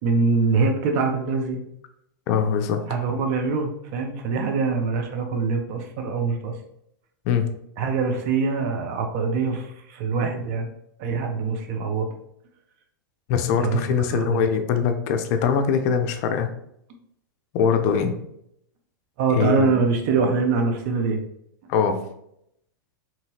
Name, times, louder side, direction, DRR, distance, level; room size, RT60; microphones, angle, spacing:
voice 1, 0.0-1.6 2.9-6.6 7.8-10.7 11.0-12.1 13.6-13.8 14.1-14.4 19.2-21.2, right 4 dB, 50° right, 4 dB, 0.6 m, -24 dB
voice 2, 2.3-2.8 7.3-7.5 13.3-16.5 17.5-18.1 19.3-19.8 21.7-22.0, left 7 dB, 50° left, 7 dB, 0.4 m, -22 dB
2.8 x 2.7 x 2.8 m, 0.75 s
hypercardioid pair, 115°, 11 cm